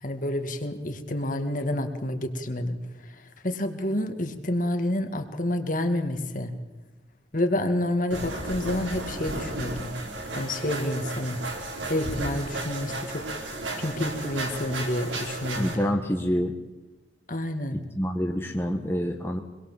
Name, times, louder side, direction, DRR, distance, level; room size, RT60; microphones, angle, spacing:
voice 1, 0.0-6.5 7.3-9.9 10.3-11.4 11.9-13.2 13.8-16.0 17.3-17.8, left 1 dB, 45° left, 6 dB, 2.0 m, -29 dB
sound 1, 8.1-15.7, right 2 dB, 80° right, 4.4 m, -34 dB
voice 2, 15.6-16.5 17.9-19.4, equal, 15° left, 2 dB, 1.3 m, -27 dB
25.5 x 21.5 x 7.5 m, 1.2 s
head